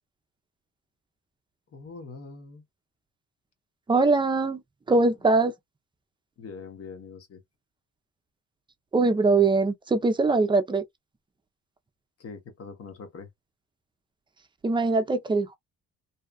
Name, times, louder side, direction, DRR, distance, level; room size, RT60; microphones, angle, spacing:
voice 1, 1.7-2.6 6.4-7.4 12.2-13.3, left 4 dB, 50° left, 1.0 m, -42 dB
voice 2, 3.9-4.6 4.9-5.5 8.9-10.8 14.6-15.6, right 3 dB, 15° right, 0.6 m, -22 dB
2.7 x 2.3 x 2.3 m
cardioid pair, 90°, 30 cm